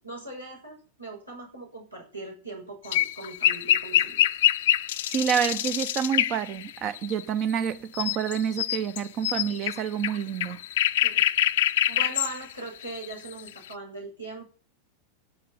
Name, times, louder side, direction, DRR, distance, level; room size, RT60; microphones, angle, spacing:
voice 1, 0.0-4.2 11.0-11.3 11.9-14.4, right 2 dB, 90° right, 6.6 m, -40 dB
sound 1, 2.9-7.7 8.0-13.7, left 13 dB, 55° left, 0.6 m, -25 dB
voice 2, 5.1-10.6, right 8 dB, 35° right, 0.9 m, -28 dB
12.0 x 7.6 x 8.3 m
figure-of-eight pair, 90°, 0 cm